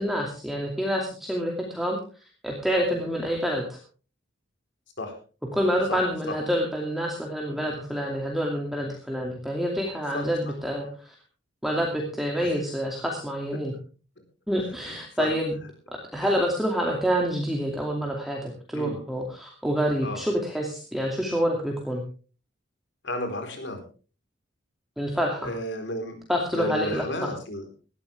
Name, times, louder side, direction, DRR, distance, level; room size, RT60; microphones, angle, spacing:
voice 1, 0.0-2.0 2.4-3.8 5.5-11.1 11.6-13.7 14.5-15.5 16.1-22.0 25.0-25.5 26.3-27.3, equal, ahead, -1 dB, 2.5 m, -27 dB
voice 2, 5.9-6.4 10.1-10.5 12.4-12.5 14.8-15.3 18.7-19.0 20.0-20.2 23.0-23.8 25.4-26.2 26.5-27.7, left 1 dB, 65° left, 6 dB, 4.2 m, -33 dB
18.5 x 13.5 x 3.5 m, 0.36 s
head